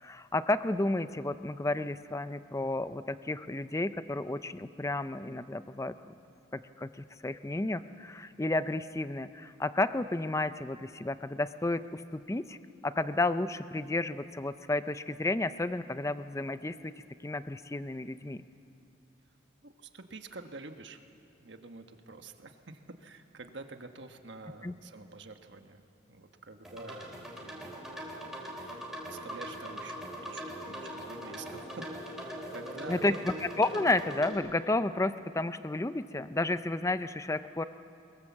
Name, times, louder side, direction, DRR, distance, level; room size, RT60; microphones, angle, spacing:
voice 1, 0.0-5.9 6.5-12.6 12.8-16.9 17.2-18.4 24.6-24.7 32.9-33.1 33.6-37.6, left 2 dB, 15° left, 12 dB, 0.5 m, -32 dB
voice 2, 19.6-21.1 21.4-27.7 28.2-33.3, right 3 dB, 65° right, 6 dB, 1.3 m, -48 dB
sound 1, 26.6-34.3, equal, ahead, 3.3 m, -41 dB
22.5 x 21.5 x 7.3 m, 2.6 s
head